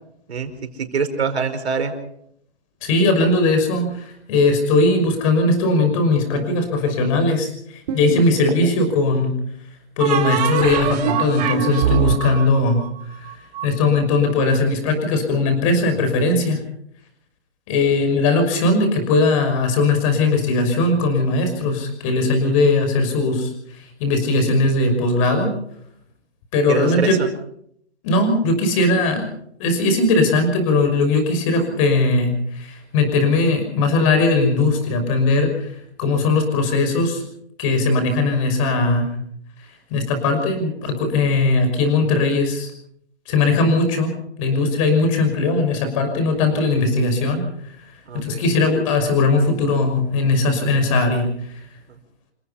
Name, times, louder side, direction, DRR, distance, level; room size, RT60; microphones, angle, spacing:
voice 1, 0.3-1.9 18.0-18.1 22.4-22.7 26.7-27.3 48.1-48.4 51.9-52.0, right 5 dB, 70° right, 7 dB, 5.1 m, -25 dB
voice 2, 2.8-9.4 10.0-12.8 13.2-13.3 13.6-16.6 17.7-23.5 23.8-25.5 26.5-27.2 28.0-29.3 29.6-35.7 36.0-37.2 37.6-39.1 39.9-42.7 43.3-47.5 48.1-51.3, left 3 dB, 30° left, 6 dB, 6.0 m, -19 dB
sound 1, 7.9-8.7 10.0-13.6, right 8 dB, 35° right, 3.6 m, -23 dB
28.5 x 16.5 x 5.8 m, 0.70 s
hypercardioid pair, 155°, 33 cm